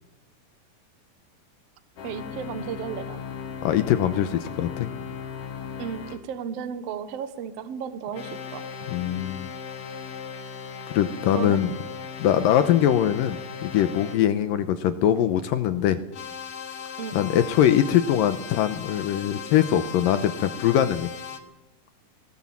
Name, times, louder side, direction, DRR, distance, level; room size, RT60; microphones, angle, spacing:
sound 1, 2.0-6.2 8.1-14.2 16.1-21.4, left 7 dB, 55° left, 1.7 m, -37 dB
voice 1, 2.0-3.2 5.8-8.9 11.3-11.6 17.0-17.2, right 8 dB, 70° right, 11 dB, 1.5 m, -34 dB
voice 2, 3.6-4.9 8.9-9.5 10.9-11.7 12.2-16.0 17.1-21.1, left 10 dB, 75° left, 11 dB, 2.3 m, -22 dB
19.0 x 18.5 x 7.4 m, 0.94 s
omnidirectional pair, 4.6 m